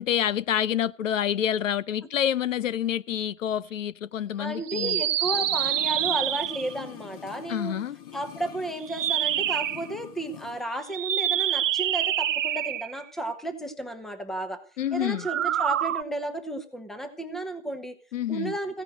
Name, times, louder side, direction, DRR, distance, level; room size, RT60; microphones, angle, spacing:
voice 1, 0.0-5.0 7.5-8.0 14.8-15.3 18.1-18.5, left 10 dB, 80° left, 0.8 m, -27 dB
voice 2, 4.4-7.8 8.1-14.6 14.9-17.9 18.3-18.8, right 1 dB, ahead, 0.9 m, -33 dB
sound 1, 4.6-6.8 8.8-9.9 10.9-13.0 15.1-16.0, right 11 dB, 75° right, 0.8 m, -27 dB
sound 2, 5.2-10.7 10.9-11.0, left 10 dB, 30° left, 1.1 m, -45 dB
16.0 x 10.5 x 6.3 m
hypercardioid pair, 160°, 38 cm